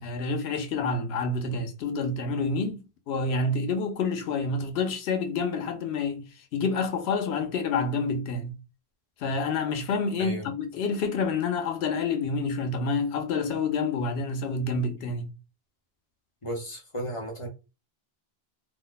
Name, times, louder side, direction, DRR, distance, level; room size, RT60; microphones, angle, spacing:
voice 1, 0.0-8.6 9.2-15.3, left 4 dB, 90° left, 0.9 m, -28 dB
voice 2, 16.4-17.5, equal, 30° left, 1.0 m, -34 dB
2.7 x 2.1 x 3.9 m
omnidirectional pair, 1.0 m